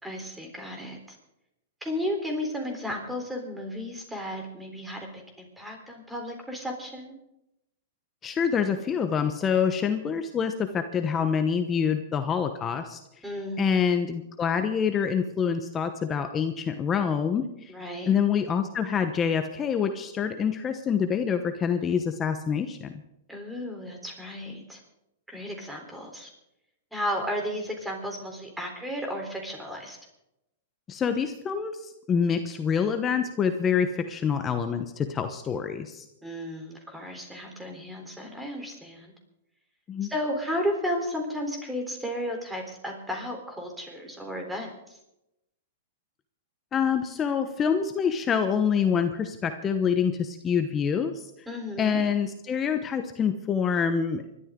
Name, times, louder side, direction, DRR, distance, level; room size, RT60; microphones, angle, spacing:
voice 1, 0.0-1.2 1.8-7.1 13.2-13.7 17.7-18.2 23.3-24.8 25.3-26.3 26.9-30.0 36.2-39.1 40.1-45.0 51.5-52.0, equal, 5° right, 2 dB, 3.7 m, -33 dB
voice 2, 8.2-13.0 13.6-17.7 18.1-23.0 30.9-36.0 39.9-40.1 46.7-51.3 51.8-54.3, left 7 dB, 20° left, 7 dB, 1.0 m, -26 dB
25.0 x 12.5 x 3.8 m, 0.86 s
hypercardioid pair, 140°, 0 cm